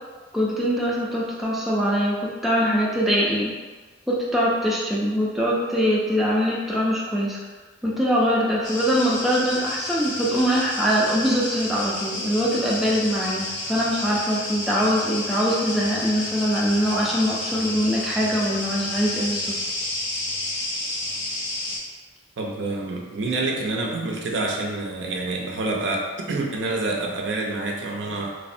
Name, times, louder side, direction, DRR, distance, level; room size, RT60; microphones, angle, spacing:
voice 1, 0.3-3.5 4.1-7.4 7.8-19.6, equal, ahead, -6 dB, 0.3 m, -23 dB
sound 1, 8.6-21.8, left 2 dB, 85° left, 0.7 m, -31 dB
voice 2, 22.4-28.4, right 2 dB, 75° right, 0 dB, 0.5 m, -27 dB
3.3 x 2.0 x 2.5 m, 1.4 s
head